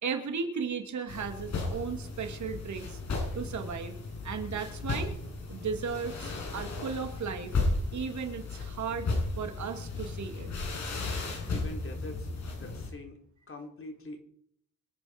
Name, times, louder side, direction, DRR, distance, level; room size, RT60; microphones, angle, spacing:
voice 1, 0.0-3.0 3.3-3.9 4.2-5.1 5.5-7.6 7.9-9.1 9.4-10.5, right 6 dB, 70° right, 5 dB, 2.8 m, -35 dB
sound 1, 1.1-12.9, left 3 dB, 65° left, 7.5 m, -35 dB
voice 2, 11.5-13.2 13.5-14.2, left 2 dB, 45° left, 3 dB, 4.1 m, -44 dB
25.0 x 9.2 x 5.3 m, 0.65 s
cardioid pair, 100°, 30 cm